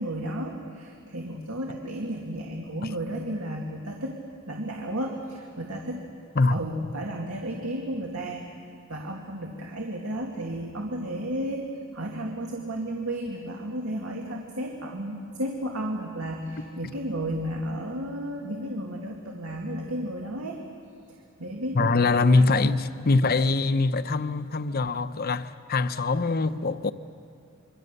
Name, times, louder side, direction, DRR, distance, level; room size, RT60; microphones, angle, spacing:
voice 1, 0.0-4.2 4.5-6.1 6.5-8.4 8.9-11.6 11.9-20.6 21.1-22.0 22.3-22.8, right 1 dB, 85° right, 2.2 m, -33 dB
voice 2, 21.7-26.9, left 3 dB, 45° left, 0.8 m, -23 dB
27.5 x 23.0 x 6.7 m
head